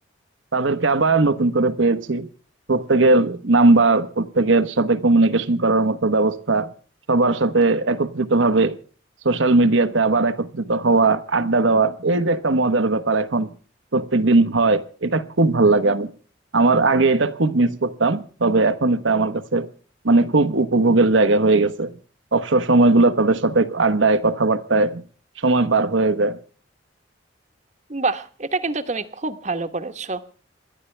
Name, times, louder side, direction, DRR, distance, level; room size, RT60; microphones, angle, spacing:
voice 1, 0.5-2.3 2.7-6.7 7.1-8.8 9.2-13.5 13.9-16.1 16.5-19.7 20.0-21.9 22.3-25.0 25.4-26.4, right 3 dB, 75° right, 1.2 m, -18 dB
voice 2, 27.9-30.2, right 3 dB, 40° right, 1.2 m, -26 dB
27.0 x 11.5 x 3.4 m
head